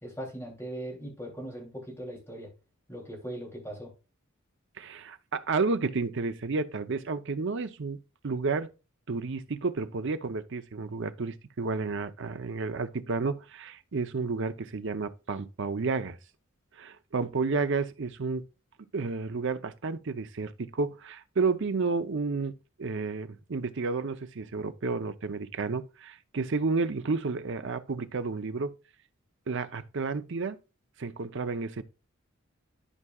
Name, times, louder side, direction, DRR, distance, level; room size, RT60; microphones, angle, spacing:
voice 1, 0.0-2.5 2.9-3.9, right 1 dB, 10° left, 2.9 m, -39 dB
voice 2, 4.8-8.0 8.2-8.7 9.1-16.2 16.8-18.4 18.9-22.5 22.8-28.7 29.5-30.6 31.0-31.8, right 4 dB, 60° right, 0.6 m, -31 dB
12.5 x 4.7 x 2.3 m
head